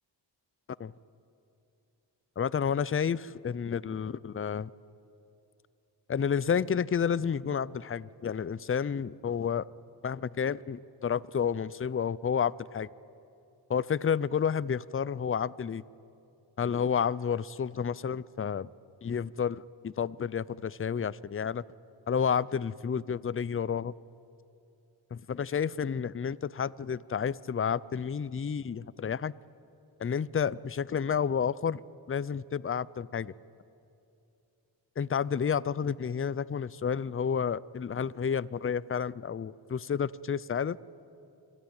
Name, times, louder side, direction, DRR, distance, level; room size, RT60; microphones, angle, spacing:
voice 1, 2.4-4.7 6.1-9.6 10.0-12.9 13.7-15.8 16.6-18.7 19.0-21.6 22.1-23.9 25.1-29.3 30.0-31.8 32.1-33.3 35.0-40.8, left 7 dB, 30° left, 21 dB, 0.5 m, -30 dB
26.5 x 22.5 x 9.0 m, 2.7 s
wide cardioid pair, 80°, 43 cm